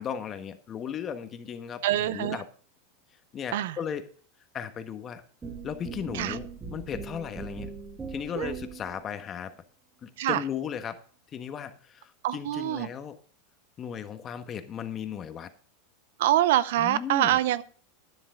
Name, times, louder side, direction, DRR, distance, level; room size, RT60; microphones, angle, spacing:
voice 1, 0.0-2.4 3.3-4.1 4.5-5.2 5.6-7.7 8.1-9.5 10.0-11.0 11.3-13.2 13.8-15.5 16.8-17.4, left 8 dB, 30° left, 9 dB, 1.3 m, -36 dB
voice 2, 1.8-2.4 3.5-3.8 6.1-6.4 8.4-8.6 10.2-10.4 12.2-12.9 16.2-17.6, right 13 dB, 75° right, 17 dB, 0.6 m, -25 dB
sound 1, 5.4-9.0, right 5 dB, 20° right, 2.4 m, -39 dB
11.5 x 9.9 x 3.7 m, 0.44 s
hypercardioid pair, 115°, 0 cm